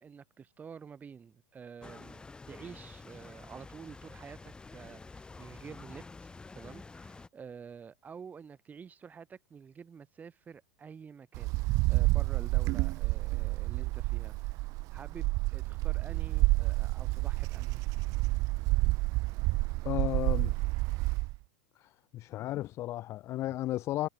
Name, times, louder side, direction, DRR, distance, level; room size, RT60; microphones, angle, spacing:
voice 1, 0.0-14.6 14.9-17.8 18.8-18.9, right 6 dB, 20° right, 1.5 m, -49 dB
sound 1, 1.8-7.3, left 3 dB, 10° left, 0.9 m, -49 dB
Wind, 11.3-21.4, right 23 dB, 45° right, 0.4 m, -29 dB
voice 2, 19.8-20.7 21.8-24.1, left 15 dB, 35° left, 0.4 m, -34 dB
hypercardioid pair, 115°, 8 cm